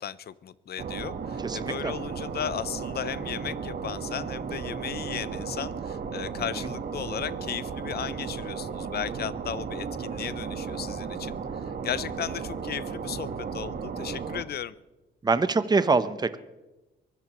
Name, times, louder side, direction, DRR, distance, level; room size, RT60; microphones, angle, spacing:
voice 1, 0.0-11.4 11.8-14.8, left 9 dB, 55° left, 18 dB, 0.6 m, -35 dB
sound 1, 0.8-14.4, right 6 dB, 50° right, 1.4 m, -35 dB
voice 2, 1.4-1.9 15.2-16.4, right 4 dB, 20° right, 12 dB, 0.8 m, -24 dB
23.5 x 16.5 x 3.0 m, 1.1 s
cardioid pair, 90°, 20 cm